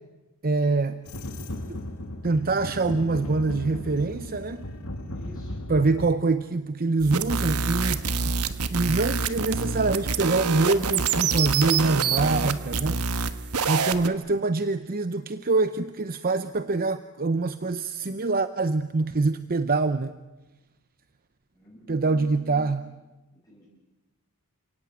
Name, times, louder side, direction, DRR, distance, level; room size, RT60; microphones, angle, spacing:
voice 1, 0.4-1.0 1.7-1.8 2.2-4.7 5.7-8.4 8.7-13.3 13.7-20.1 21.9-22.8, right 3 dB, 40° right, 11 dB, 0.7 m, -25 dB
sound 1, 1.0-6.1, left 1 dB, 80° left, 2.4 m, -36 dB
voice 2, 5.0-5.7 21.5-22.7 23.3-23.6, equal, 15° left, -6 dB, 6.7 m, -47 dB
sound 2, 7.0-14.1, right 5 dB, 80° right, 1.3 m, -26 dB
29.5 x 18.0 x 8.9 m, 1.1 s
head